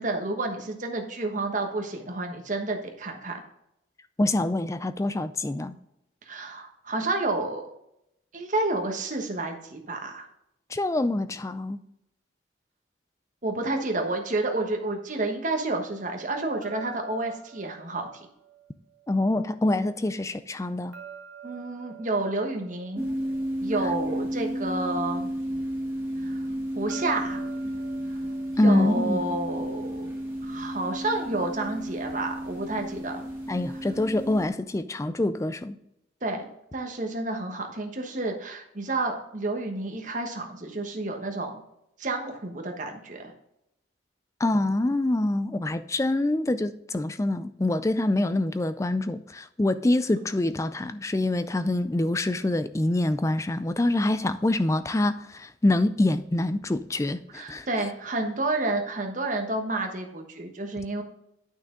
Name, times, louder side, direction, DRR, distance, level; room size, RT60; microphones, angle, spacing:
voice 1, 0.0-3.4 6.3-7.6 8.3-10.3 13.4-18.3 21.4-23.1 23.6-25.3 26.2-26.4 26.7-27.4 28.6-30.2 30.4-33.2 36.2-41.6 42.0-43.3 57.3-61.0, right 2 dB, 40° right, 1.2 m, -30 dB
voice 2, 4.2-5.8 10.7-11.8 19.1-20.9 28.6-29.3 33.5-35.8 44.4-57.7, left 2 dB, 15° left, 0.3 m, -25 dB
sound 1, 16.6-19.7 20.9-24.4 26.9-30.0, right 8 dB, 85° right, 1.1 m, -48 dB
sound 2, 23.0-34.5, equal, 10° right, 2.0 m, -32 dB
9.3 x 6.0 x 3.8 m
head